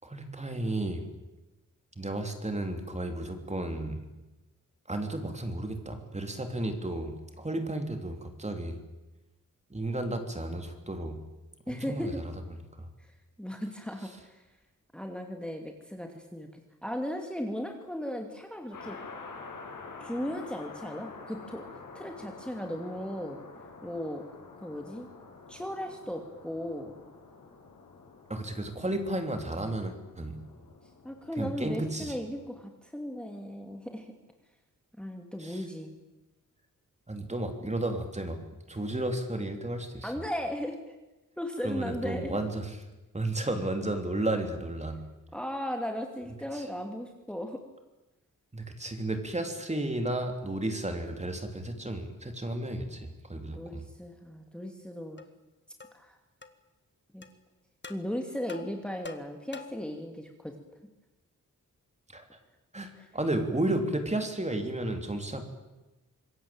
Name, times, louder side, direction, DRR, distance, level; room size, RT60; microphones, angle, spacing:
voice 1, 0.0-1.0 2.0-4.0 4.9-8.8 9.7-11.2 11.7-12.2 12.5-12.6 28.3-30.4 31.4-32.2 35.4-35.6 37.1-38.4 38.7-40.1 41.6-42.7 43.1-45.0 46.5-46.6 48.5-53.8 62.1-62.2 62.7-65.4, right 1 dB, 20° right, 5 dB, 3.6 m, -33 dB
voice 2, 11.7-12.2 13.0-13.1 13.4-14.4 14.9-19.0 20.0-21.7 21.9-23.4 23.8-24.2 24.6-25.1 25.5-26.9 31.0-34.1 35.0-35.9 40.0-41.0 41.4-42.4 45.3-47.6 53.4-55.2 55.9-56.2 57.1-57.2 57.9-60.6 62.9-63.1, equal, 5° left, 3 dB, 2.7 m, -36 dB
sound 1, 18.7-32.6, left 4 dB, 70° left, 6.5 m, -48 dB
sound 2, 55.2-55.3 55.8-56.0 56.4-56.5 57.2-57.3 57.8-58.0 58.5-59.9, left 4 dB, 35° left, 1.9 m, -45 dB
26.0 x 22.0 x 8.9 m, 1.1 s
wide cardioid pair, 120°, 33 cm